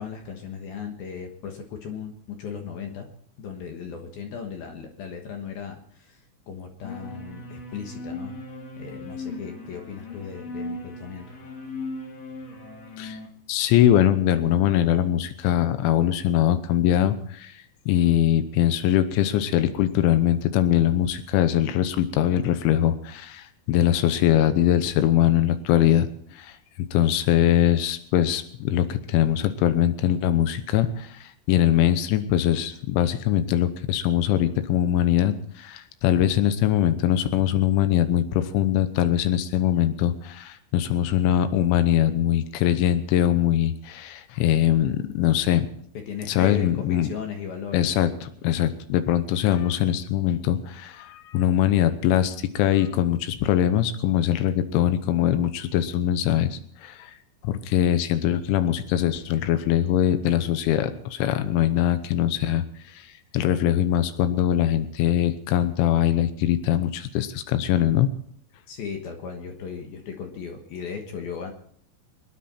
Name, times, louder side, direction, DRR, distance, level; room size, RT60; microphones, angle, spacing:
voice 1, 0.0-3.1 3.4-8.4 8.8-11.4 45.9-47.9 68.7-71.5, left 7 dB, 65° left, 4 dB, 2.8 m, -36 dB
sound 1, 6.8-13.3, left 2 dB, 45° left, 2.6 m, -37 dB
voice 2, 13.5-17.5 17.9-26.1 26.3-26.5 26.9-45.7 46.3-47.1 47.7-57.1 57.4-62.6 63.3-68.1, left 11 dB, 80° left, 11 dB, 3.3 m, -22 dB
26.0 x 10.0 x 4.3 m, 0.62 s
omnidirectional pair, 5.5 m